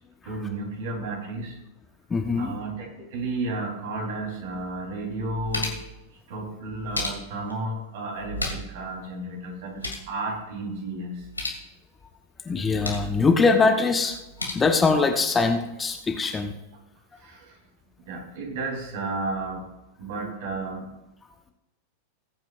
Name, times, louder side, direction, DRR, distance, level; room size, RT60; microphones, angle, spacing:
voice 1, 0.2-1.6 2.4-5.8 6.3-11.3 17.2-17.6 18.1-19.7 20.0-20.9, right 2 dB, 55° right, 0 dB, 3.9 m, -33 dB
voice 2, 2.1-2.5 12.4-14.2 14.5-16.5, left 4 dB, 15° left, 5 dB, 1.2 m, -22 dB
sound 1, 4.5-4.6 5.1-6.0 6.7-7.5 8.2-8.8 9.1-9.2 9.5-10.1 11.2-11.6 12.5-13.1 14.1-14.5, left 2 dB, 85° left, 2.1 m, -34 dB
20.5 x 9.0 x 2.6 m, 0.95 s
figure-of-eight pair, 90°, 0 cm